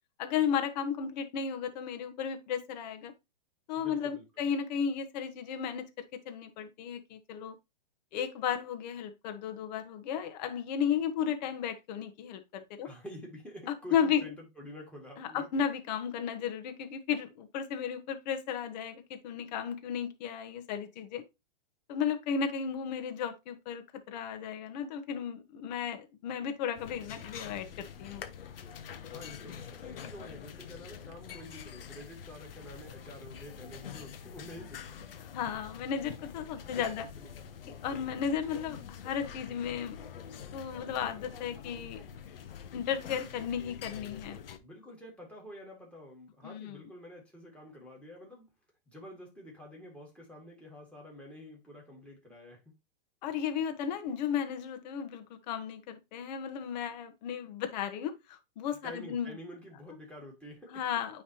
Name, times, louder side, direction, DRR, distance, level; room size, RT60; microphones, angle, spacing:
voice 1, 0.2-3.1 3.7-5.9 6.1-7.5 8.1-12.9 13.7-14.2 15.2-21.2 21.9-28.2 35.3-37.0 37.8-40.0 40.5-42.0 42.7-44.4 46.4-46.8 53.2-59.3 60.7-61.2, left 8 dB, 45° left, 1.4 m, -34 dB
voice 2, 3.8-4.5 12.8-15.5 29.1-34.9 36.8-37.7 44.6-48.5 48.9-52.7 58.8-60.8, left 1 dB, 5° left, 2.2 m, -48 dB
sound 1, 26.7-44.6, left 8 dB, 70° left, 1.1 m, -46 dB
9.3 x 3.5 x 2.9 m
hypercardioid pair, 140°, 29 cm